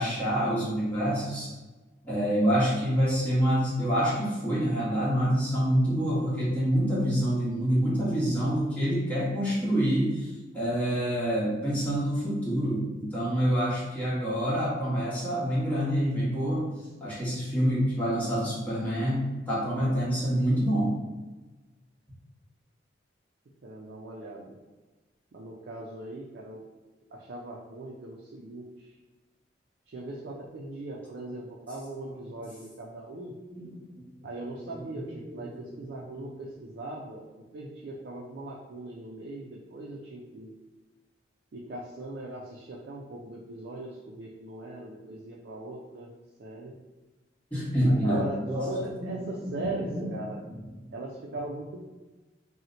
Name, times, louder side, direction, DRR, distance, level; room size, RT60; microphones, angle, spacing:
voice 1, 0.0-1.5 2.0-16.7 17.0-20.9 33.5-33.7 34.7-34.8 35.2-35.4 35.7-35.8 36.2-36.3 47.5-50.1, equal, 10° left, -9 dB, 1.0 m, -27 dB
voice 2, 23.6-24.6 25.3-26.6 27.1-28.9 29.9-33.3 34.2-37.2 37.5-40.5 41.5-46.1 46.4-46.8 47.9-48.4 48.7-50.4 50.9-51.8, right 2 dB, 60° right, -3 dB, 0.4 m, -40 dB
2.8 x 2.1 x 3.8 m, 1.2 s
head